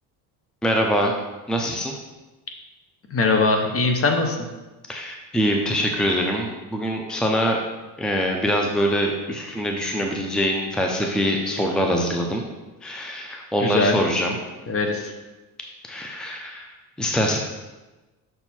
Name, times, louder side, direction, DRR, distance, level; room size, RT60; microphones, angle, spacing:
voice 1, 0.6-1.1 1.5-1.9 4.9-7.6 8.0-12.4 12.8-14.3 15.8-17.4, equal, ahead, 2 dB, 0.7 m, -24 dB
voice 2, 3.1-4.5 13.6-14.0 14.7-15.1, left 3 dB, 35° left, 4 dB, 1.0 m, -21 dB
6.6 x 4.4 x 4.3 m, 1.1 s
supercardioid pair, 95°, 39 cm